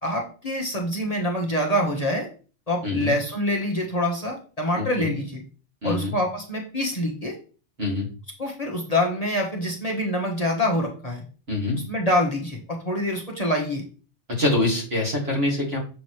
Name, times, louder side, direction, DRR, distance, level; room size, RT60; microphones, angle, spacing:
voice 1, 0.0-2.3 2.7-5.4 5.8-7.3 8.4-11.2 11.9-13.8, left 1 dB, 30° left, 0 dB, 1.3 m, -25 dB
voice 2, 2.8-3.1 4.7-5.1 5.8-6.1 7.8-8.1 11.5-11.8 14.4-15.8, left 2 dB, 55° right, -3 dB, 2.8 m, -25 dB
7.1 x 6.1 x 3.2 m, 0.37 s
omnidirectional pair, 1.2 m